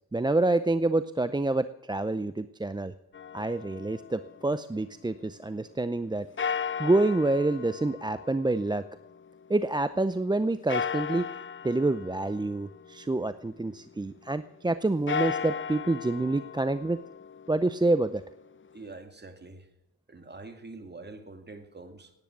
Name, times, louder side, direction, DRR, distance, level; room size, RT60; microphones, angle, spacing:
voice 1, 0.1-2.9 3.3-6.3 6.8-8.8 9.5-11.3 11.6-17.0 17.5-18.2, right 2 dB, 10° right, 12 dB, 0.6 m, -27 dB
sound 1, 3.1-5.2 6.4-9.7 10.7-13.7 14.9-18.9, left 6 dB, 35° left, 0.8 m, -37 dB
voice 2, 18.7-19.7 20.1-22.1, right 3 dB, 25° right, 7 dB, 2.3 m, -45 dB
18.0 x 9.8 x 6.1 m, 0.90 s
cardioid pair, 65°, 37 cm